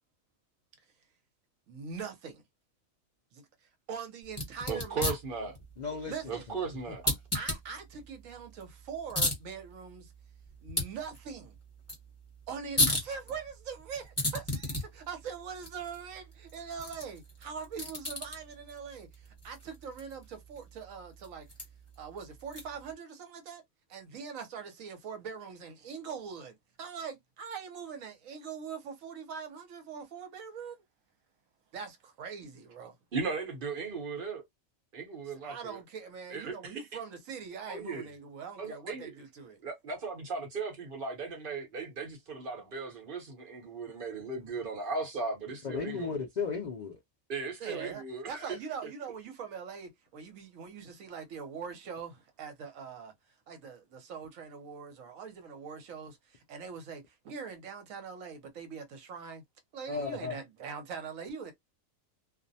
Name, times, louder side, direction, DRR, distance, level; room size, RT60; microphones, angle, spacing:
voice 1, 1.7-2.4 3.3-3.4 3.9-5.2 6.1-6.4 7.0-10.1 10.6-11.5 12.5-21.5 22.0-23.6 23.9-30.8 31.7-32.9 35.4-39.6 47.6-53.1 53.5-59.4 59.7-61.5, right 6 dB, 75° right, 1.1 m, -42 dB
sound 1, 4.2-22.9, left 1 dB, 10° left, 0.9 m, -37 dB
voice 2, 4.7-5.5 6.3-7.0 33.1-34.4 34.9-35.8 36.3-36.8 37.7-38.1 38.6-39.1 39.6-46.3 47.3-48.5 48.8-48.9, right 4 dB, 45° right, 0.9 m, -37 dB
voice 3, 5.8-6.1 45.6-47.0 59.9-60.4, left 5 dB, 80° left, 0.4 m, -34 dB
2.5 x 2.0 x 2.6 m
omnidirectional pair, 1.4 m